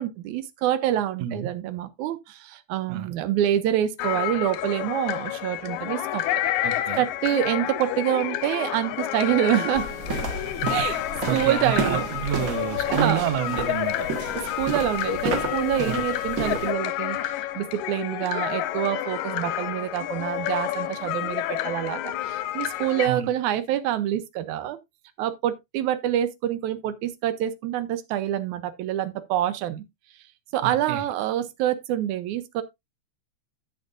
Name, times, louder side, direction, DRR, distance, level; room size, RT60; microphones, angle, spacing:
voice 1, 0.0-6.2 6.9-9.9 10.7-11.0 11.3-12.1 12.9-13.3 14.3-24.8 25.2-29.9 30.5-32.6, right 12 dB, 85° right, 2.1 m, -26 dB
sound 1, 4.0-23.1, left 13 dB, 90° left, 2.1 m, -29 dB
voice 2, 6.6-7.0 11.3-14.1 15.9-16.0 23.1-23.3 30.6-31.0, right 10 dB, 70° right, 1.9 m, -29 dB
sound 2, 9.7-16.7, right 3 dB, 40° right, 1.3 m, -31 dB
10.5 x 8.0 x 2.5 m
omnidirectional pair, 3.4 m